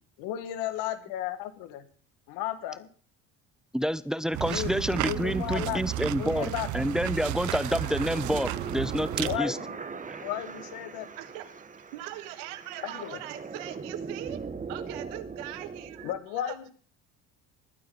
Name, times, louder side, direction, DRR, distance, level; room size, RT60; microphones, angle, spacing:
voice 1, 0.2-1.9 2.3-2.9 4.5-4.7 5.0-5.8 6.2-6.7 9.2-9.8 10.2-11.1 12.8-13.2 16.0-16.7, left 13 dB, 80° left, 10 dB, 1.9 m, -34 dB
voice 2, 3.7-9.6 10.1-10.2, equal, ahead, 16 dB, 0.6 m, -28 dB
sound 1, 4.3-9.4, right 16 dB, 60° right, 0.6 m, -33 dB
sound 2, 4.5-16.2, right 5 dB, 25° right, 1.2 m, -41 dB
voice 3, 11.2-11.5 11.9-16.7, right 14 dB, 90° right, 12 dB, 1.4 m, -41 dB
20.5 x 9.3 x 4.0 m, 0.42 s
cardioid pair, 105°, 34 cm